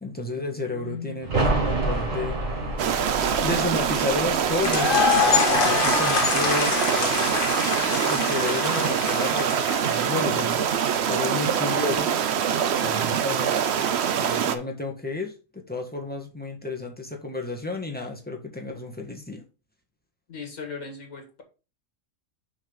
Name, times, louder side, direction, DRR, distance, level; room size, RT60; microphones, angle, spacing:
voice 1, 0.0-2.4 2.7-2.8 3.4-7.4 7.8-10.6 11.1-12.1 12.8-13.6 14.2-19.4, left 3 dB, 5° left, 1 dB, 1.4 m, -32 dB
voice 2, 0.7-1.2 20.3-21.4, left 5 dB, 85° left, 3 dB, 2.3 m, -37 dB
sound 1, 1.2-6.8 7.1-7.2, right 2 dB, 75° right, 2.7 m, -29 dB
sound 2, 2.8-14.6, right 8 dB, 60° right, 0.9 m, -24 dB
sound 3, 4.5-10.5, left 5 dB, 45° left, 1.2 m, -25 dB
6.4 x 4.2 x 5.4 m, 0.33 s
omnidirectional pair, 1.4 m